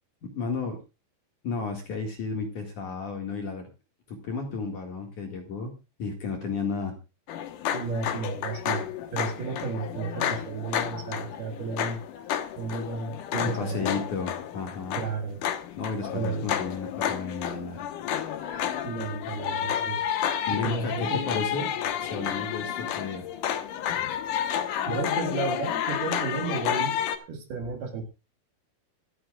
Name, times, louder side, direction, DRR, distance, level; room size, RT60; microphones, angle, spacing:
voice 1, 0.2-0.8 1.4-3.7 4.1-7.0 13.4-15.0 15.8-17.9 20.5-21.7 22.0-23.3, left 4 dB, 50° left, 2 dB, 2.8 m, -33 dB
sound 1, 7.3-27.2, left 9 dB, 90° left, 1.8 m, -31 dB
voice 2, 7.7-12.0 12.6-14.0 14.9-15.4 16.1-16.5 18.5-20.0 20.5-21.3 24.9-27.0 27.3-28.0, right 4 dB, 60° right, 4 dB, 3.5 m, -33 dB
25.5 x 9.6 x 2.4 m, 0.28 s
omnidirectional pair, 5.6 m